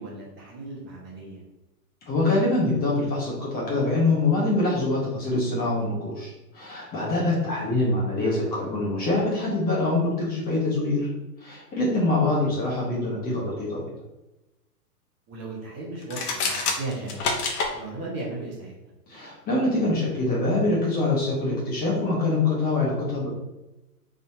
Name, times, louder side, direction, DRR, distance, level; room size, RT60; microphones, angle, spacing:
voice 1, 0.0-1.4 12.4-12.5 15.3-17.1 17.7-18.7, right 2 dB, 25° right, -5 dB, 1.1 m, -36 dB
voice 2, 2.1-11.1 11.4-13.8 19.1-23.3, left 2 dB, 20° left, -5 dB, 1.2 m, -24 dB
sound 1, 16.0-17.7, left 4 dB, 65° left, 1.1 m, -27 dB
4.1 x 3.7 x 2.8 m, 1.0 s
hypercardioid pair, 130°, 48 cm